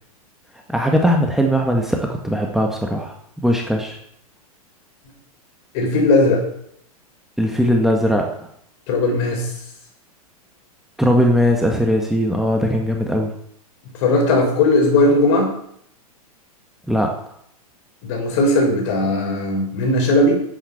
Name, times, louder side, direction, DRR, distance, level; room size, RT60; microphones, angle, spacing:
voice 1, 0.7-4.0 7.4-8.3 11.0-13.3 16.9-17.1, equal, ahead, 1 dB, 1.8 m, -19 dB
voice 2, 5.7-6.4 8.9-9.5 14.0-15.5 18.0-20.3, left 2 dB, 50° left, 1 dB, 6.2 m, -17 dB
11.5 x 9.9 x 7.3 m, 0.69 s
figure-of-eight pair, 100°, 19 cm